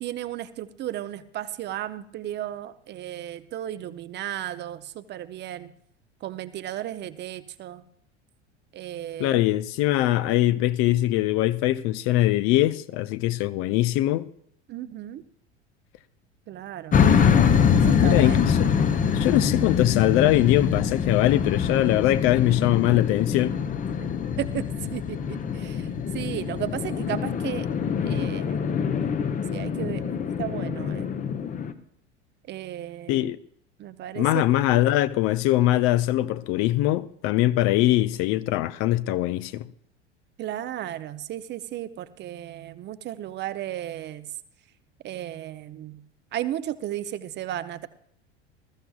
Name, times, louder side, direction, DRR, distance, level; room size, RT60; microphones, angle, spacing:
voice 1, 0.0-5.7 6.2-7.8 8.7-9.4 14.7-15.2 16.5-17.1 17.7-18.4 24.0-24.1 24.4-24.7 24.9-25.9 26.1-27.7 28.0-28.6 29.5-30.0 30.4-31.1 32.5-33.3 33.8-34.7 40.4-44.3 45.0-46.0 46.3-47.9, right 12 dB, 30° right, 0.7 m, -34 dB
voice 2, 9.2-14.3 17.9-18.8 19.1-23.6 33.1-33.4 34.2-39.7, left 15 dB, 40° left, 0.5 m, -22 dB
sound 1, 16.9-31.7, left 7 dB, 25° left, 0.9 m, -24 dB
20.5 x 14.0 x 2.4 m
figure-of-eight pair, 80°, 35 cm